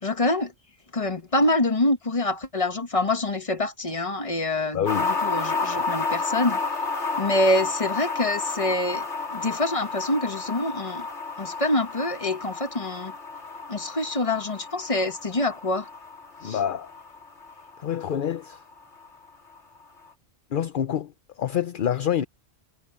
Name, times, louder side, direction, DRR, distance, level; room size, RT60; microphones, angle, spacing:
voice 1, 0.0-0.5 0.9-6.6 7.2-11.1 11.4-13.1 13.7-15.9 16.4-16.6, left 2 dB, 30° left, 1.5 m, -26 dB
voice 2, 4.7-5.1 16.4-16.9 17.8-18.6 20.5-22.2, left 9 dB, 55° left, 0.8 m, -27 dB
sound 1, 4.8-19.3 19.6-19.7, left 4 dB, 90° left, 2.5 m, -31 dB
omnidirectional pair, 1.1 m